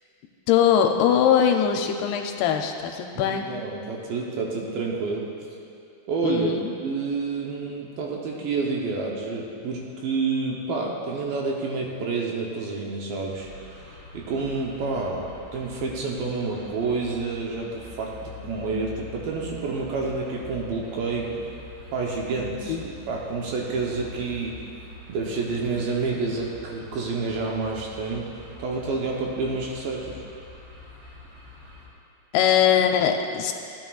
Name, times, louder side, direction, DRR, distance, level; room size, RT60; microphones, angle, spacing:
voice 1, 0.5-3.5 6.2-6.7 22.7-22.8 32.3-33.5, left 8 dB, 80° left, 4 dB, 2.4 m, -21 dB
voice 2, 3.1-5.3 6.1-6.5 6.8-13.5 14.1-21.3 21.9-24.6 25.1-28.3 28.6-30.2, right 4 dB, 75° right, -2 dB, 2.4 m, -29 dB
sound 1, 13.3-31.9, left 2 dB, 30° right, 2.7 m, -45 dB
15.5 x 10.0 x 2.4 m, 2.5 s
omnidirectional pair, 4.7 m